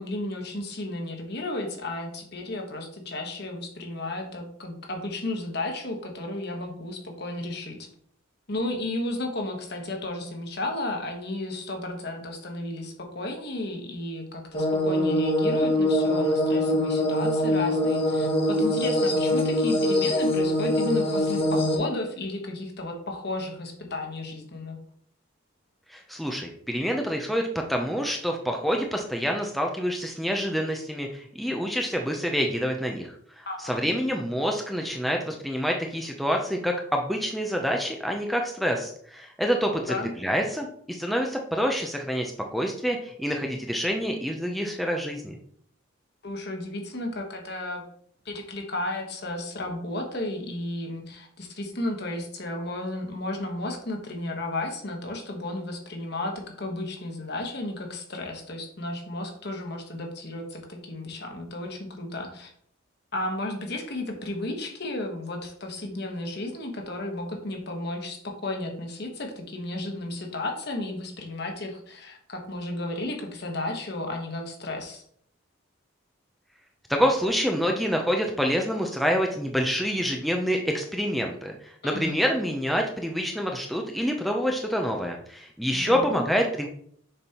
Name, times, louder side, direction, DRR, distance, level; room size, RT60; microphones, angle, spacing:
voice 1, 0.0-7.9 8.5-24.8 33.5-33.8 39.7-40.1 46.2-47.8 48.2-62.5 63.1-75.0 81.8-82.2 85.7-86.2, left 2 dB, 50° left, 2 dB, 1.2 m, -33 dB
sound 1, 14.5-21.8, left 1 dB, 30° left, 1.0 m, -23 dB
voice 2, 25.9-45.4 76.9-86.7, equal, ahead, 2 dB, 0.5 m, -27 dB
6.8 x 5.2 x 2.9 m, 0.63 s
head